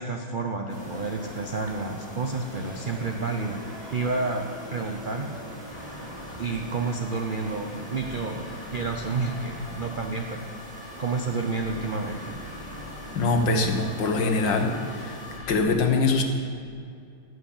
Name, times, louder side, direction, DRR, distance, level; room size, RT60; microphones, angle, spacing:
voice 1, 0.0-3.6 3.9-5.3 6.4-10.4 11.0-12.4, right 3 dB, 75° right, 3 dB, 0.4 m, -30 dB
sound 1, 0.7-15.4, equal, 30° right, 3.4 m, -42 dB
sound 2, 5.7-15.7, left 2 dB, 15° left, 1.2 m, -43 dB
voice 2, 13.2-15.1 15.5-16.2, left 3 dB, 70° left, 4 dB, 1.9 m, -23 dB
18.0 x 6.4 x 7.2 m, 2.3 s
omnidirectional pair, 2.1 m